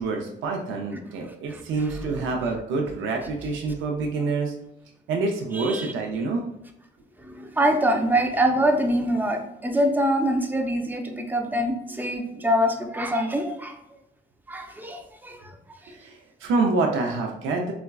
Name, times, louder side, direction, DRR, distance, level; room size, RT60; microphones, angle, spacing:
voice 1, 0.0-4.5 5.1-6.4 15.9-17.7, right 3 dB, 80° right, 1 dB, 0.5 m, -27 dB
voice 2, 1.9-2.3 5.5-5.9 7.2-13.8 14.5-15.4, equal, 10° right, 4 dB, 0.5 m, -24 dB
4.2 x 2.3 x 2.2 m, 0.83 s
cardioid pair, 90°, 20 cm